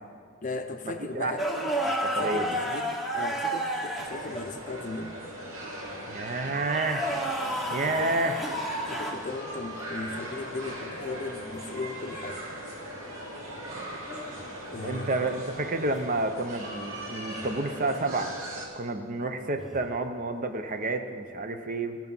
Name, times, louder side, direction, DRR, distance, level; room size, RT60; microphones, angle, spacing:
voice 1, 0.4-1.5 2.2-5.2 7.9-8.1 8.9-12.4 14.7-15.2, left 3 dB, 35° left, 7 dB, 0.6 m, -37 dB
voice 2, 1.1-2.6 6.1-7.0 7.7-8.4 13.7-13.9 14.8-18.4 18.8-22.0, right 2 dB, 40° right, 7 dB, 0.7 m, -30 dB
sound 1, 1.4-4.5 6.6-9.2 11.6-11.8 14.1-14.4 17.3-17.5 19.6-19.9, right 1 dB, ahead, 0.9 m, -31 dB
sound 2, 4.0-18.7, right 1 dB, 75° right, 2.1 m, -39 dB
17.0 x 6.0 x 5.4 m, 2.1 s
head